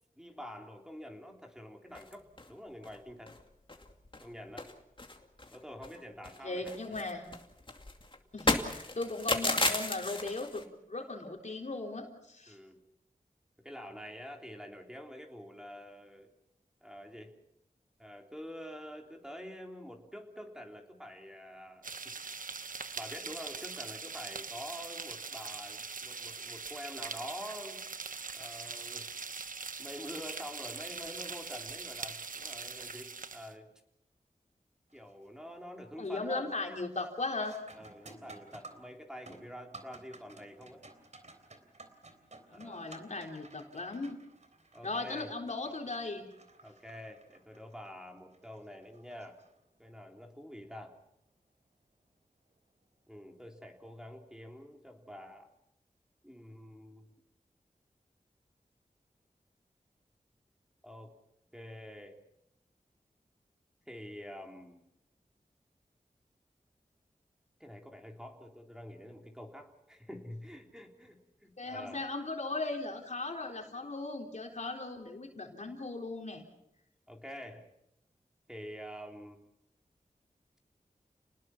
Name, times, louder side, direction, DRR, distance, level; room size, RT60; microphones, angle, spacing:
voice 1, 0.2-3.4 4.2-4.7 5.5-6.8 7.3-7.4 12.5-12.8 13.6-16.3 16.8-17.3 18.0-22.4 22.9-27.8 28.3-29.2 29.8-33.7 34.9-36.5 37.8-40.8 42.5-43.0 44.7-45.3 46.6-49.4 49.8-51.0 53.1-55.5 56.2-57.1 60.8-61.1 61.5-62.2 63.8-64.8 67.6-72.0 77.1-77.6 78.5-79.4, equal, 5° right, 2 dB, 3.5 m, -47 dB
sound 1, 1.9-2.5 2.8-2.9 3.3-3.4 3.7-4.3 4.6-6.0 6.2-10.6, left 2 dB, 35° left, 2.5 m, -34 dB
voice 2, 6.4-7.3 8.3-12.6 36.0-37.6 42.5-44.2 44.8-46.3 71.6-76.4, left 2 dB, 60° left, 2 dB, 3.8 m, -37 dB
sound 2, 21.8-33.5, right 5 dB, 75° right, 1.1 m, -42 dB
sound 3, 34.9-35.3 35.7-36.1 36.5-50.0 52.5-52.6 53.4-53.7, right 2 dB, 55° right, 3.5 m, -56 dB
30.0 x 20.0 x 5.9 m, 0.81 s
wide cardioid pair, 60°, 14 cm